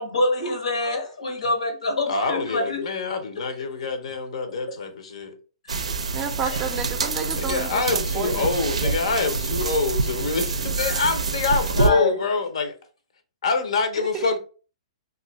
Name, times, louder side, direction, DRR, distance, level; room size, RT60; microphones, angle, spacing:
voice 1, 0.0-2.8 5.7-5.8 6.5-6.6 11.8-12.1, left 2 dB, 85° left, 1.0 m, -25 dB
voice 2, 2.1-5.3 7.4-12.7 13.4-14.4, left 4 dB, 70° left, 0.7 m, -25 dB
sound 1, 5.7-11.9, right 4 dB, 90° right, 0.4 m, -26 dB
voice 3, 6.1-8.5 8.8-8.9 14.0-14.2, right 6 dB, 20° right, 0.4 m, -31 dB
2.6 x 2.4 x 3.0 m
hypercardioid pair, 135°, 3 cm